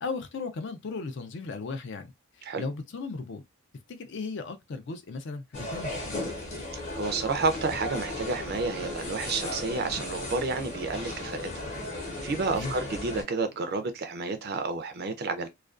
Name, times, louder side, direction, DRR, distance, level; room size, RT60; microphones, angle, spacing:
voice 1, 0.0-2.1 2.4-3.4 3.9-6.2 12.5-12.7, left 4 dB, 50° left, 0.4 m, -36 dB
sound 1, 5.5-13.2, left 1 dB, 30° left, 0.7 m, -36 dB
voice 2, 6.9-11.6 12.0-15.5, right 3 dB, 45° right, 0.4 m, -30 dB
2.3 x 2.2 x 2.4 m
head